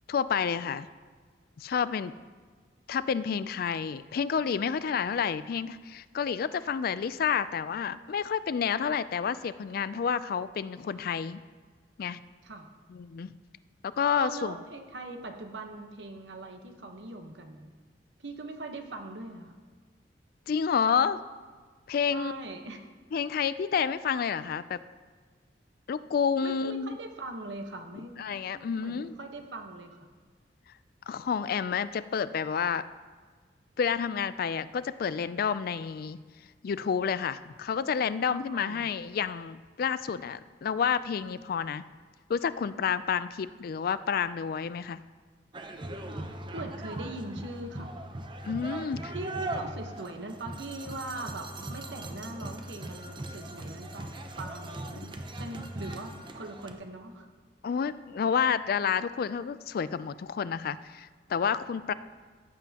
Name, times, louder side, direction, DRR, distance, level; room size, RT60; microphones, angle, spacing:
voice 1, 0.1-0.9 1.6-2.1 2.9-11.4 12.0-12.2 12.9-13.3 13.8-14.5 20.5-21.2 21.9-22.3 23.1-24.8 25.9-27.0 28.2-29.1 31.1-32.8 33.8-36.2 36.6-41.8 42.3-45.0 48.4-49.1 57.6-61.9, left 7 dB, 55° left, 15 dB, 0.3 m, -29 dB
voice 2, 14.2-17.7 18.2-19.5 22.1-22.8 26.4-28.3 28.5-30.1 38.5-38.9 46.5-47.9 49.1-54.1 54.4-57.3, right 2 dB, 80° right, 4 dB, 1.1 m, -41 dB
sound 1, 45.5-56.7, right 1 dB, 25° right, 0.7 m, -39 dB
14.5 x 8.1 x 2.9 m, 1.5 s
head